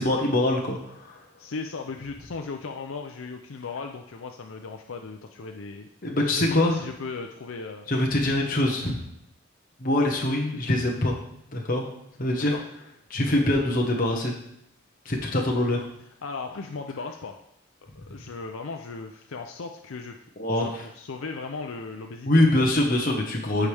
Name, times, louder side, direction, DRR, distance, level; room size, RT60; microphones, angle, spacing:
voice 1, 0.0-1.2 6.0-6.8 7.9-9.0 9.8-11.2 11.5-11.8 12.2-12.5 13.1-14.3 15.0-15.8 20.4-20.8 22.3-23.7, left 1 dB, 45° left, -1 dB, 1.2 m, -24 dB
voice 2, 1.4-5.9 6.2-7.9 12.4-12.7 16.2-17.4 17.8-20.2 20.5-22.5, left 4 dB, 90° left, 4 dB, 0.6 m, -36 dB
14.0 x 4.8 x 3.5 m, 0.76 s
head